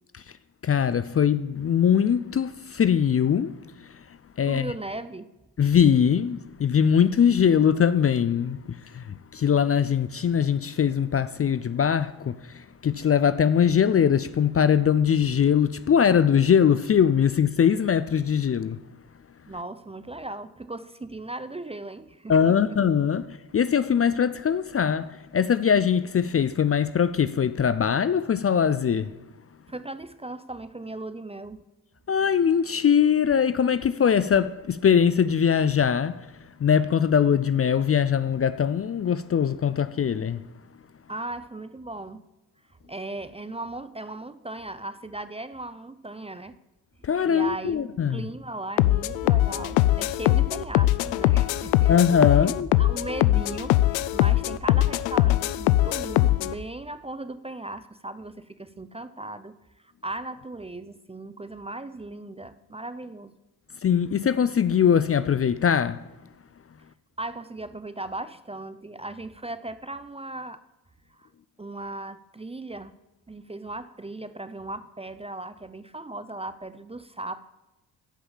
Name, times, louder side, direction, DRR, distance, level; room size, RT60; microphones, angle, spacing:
voice 1, 0.6-3.6 4.4-4.7 5.6-18.8 22.3-23.3 23.5-29.1 32.1-36.3 36.6-40.4 47.0-48.2 51.9-52.7 63.8-66.0, left 8 dB, 30° left, 0.5 m, -22 dB
voice 2, 4.5-5.3 19.5-22.8 29.7-31.6 41.1-42.3 42.9-46.6 47.3-52.0 52.7-59.6 60.0-63.4 67.2-70.6 71.1-71.3 71.6-73.0 73.3-77.4, right 2 dB, 15° right, 0.6 m, -37 dB
sound 1, 48.8-56.5, left 16 dB, 80° left, 0.5 m, -22 dB
13.5 x 5.6 x 7.3 m
hypercardioid pair, 45°, 48 cm